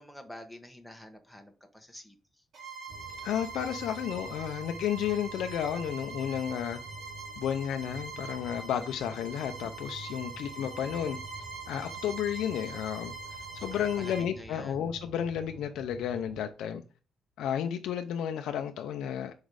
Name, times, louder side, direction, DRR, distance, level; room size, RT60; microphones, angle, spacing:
voice 1, 0.0-2.4 13.7-14.9, left 1 dB, ahead, 1.1 m, -48 dB
Bowed string instrument, 2.5-14.3, right 3 dB, 65° right, 1.7 m, -43 dB
sound 1, 2.9-16.4, right 4 dB, 40° right, 0.7 m, -49 dB
voice 2, 3.2-6.8 7.4-11.2 11.7-13.1 13.6-16.8 17.4-19.3, left 9 dB, 80° left, 0.5 m, -32 dB
5.2 x 4.0 x 4.7 m
cardioid pair, 90°, 0 cm